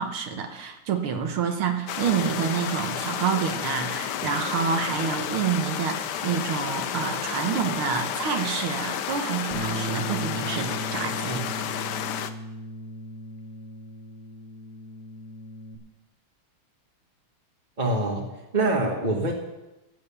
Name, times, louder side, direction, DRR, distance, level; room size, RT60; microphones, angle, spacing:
voice 1, 0.0-11.5, right 7 dB, 80° right, 5 dB, 2.2 m, -28 dB
sound 1, 1.9-12.3, left 9 dB, 65° left, 1.1 m, -31 dB
Bass guitar, 9.5-15.8, right 1 dB, 20° left, 2.2 m, -36 dB
voice 2, 17.8-19.3, right 2 dB, 25° right, -1 dB, 1.2 m, -25 dB
13.5 x 9.1 x 6.9 m, 1.0 s
omnidirectional pair, 2.3 m